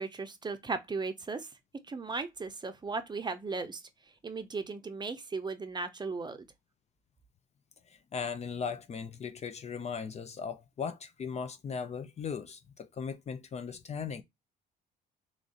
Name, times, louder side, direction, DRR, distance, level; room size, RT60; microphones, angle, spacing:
voice 1, 0.0-1.5 1.9-3.8 4.2-6.5, right 4 dB, 25° right, 0.6 m, -36 dB
voice 2, 8.1-14.2, left 6 dB, 35° left, 0.5 m, -38 dB
3.1 x 2.6 x 3.8 m
supercardioid pair, 85°, 18 cm